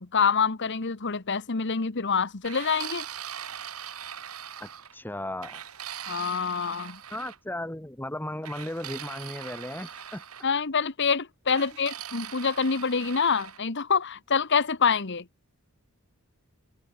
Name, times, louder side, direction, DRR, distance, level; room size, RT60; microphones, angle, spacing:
voice 1, 0.0-3.0 6.1-7.0 10.4-15.2, left 5 dB, 55° left, 1.3 m, -26 dB
sound 1, 2.4-4.9 5.4-7.4 8.4-10.5 11.5-13.6, right 9 dB, 85° right, 2.7 m, -40 dB
voice 2, 4.6-5.6 7.1-10.2, left 1 dB, 10° left, 1.6 m, -36 dB
head